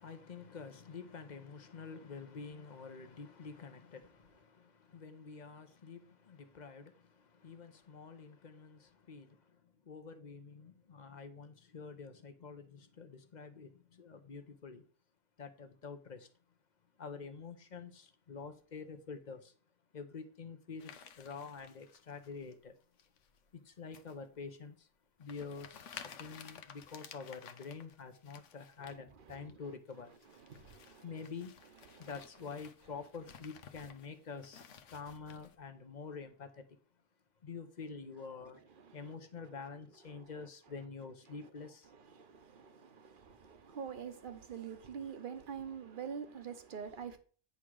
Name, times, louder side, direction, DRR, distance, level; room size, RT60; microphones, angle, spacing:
voice 1, 0.0-14.8 15.4-16.3 17.0-19.5 19.9-22.8 23.5-24.9 25.2-30.1 31.0-31.7 32.0-36.8 37.4-38.6 38.9-41.9, left 5 dB, 40° left, 1.0 m, -48 dB
sound 1, 20.8-22.5 23.0-23.4 23.9-24.2 24.7-24.8 25.2-29.0 29.3-29.5 29.9-35.6, left 7 dB, 80° left, 1.1 m, -54 dB
voice 2, 28.8-29.7 30.3-31.2 31.9-32.1 38.4-39.5 40.1-40.3 41.3-41.5 41.9-47.2, right 7 dB, 50° right, 1.0 m, -47 dB
9.8 x 3.7 x 6.2 m
omnidirectional pair, 1.2 m